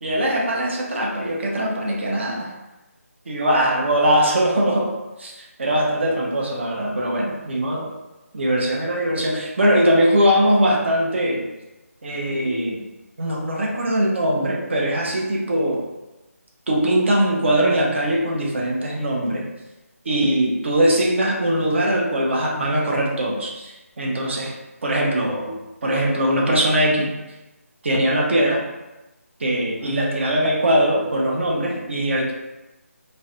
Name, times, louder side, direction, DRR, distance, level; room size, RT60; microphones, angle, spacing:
voice 1, 0.0-2.5 3.3-7.9 8.3-11.5 12.0-12.9 13.2-15.9 16.7-19.5 20.1-24.5 24.8-27.1 27.8-28.6 29.4-32.3, right 1 dB, 50° right, -1 dB, 0.6 m, -21 dB
2.4 x 2.0 x 2.7 m, 1.0 s
figure-of-eight pair, 155°, 8 cm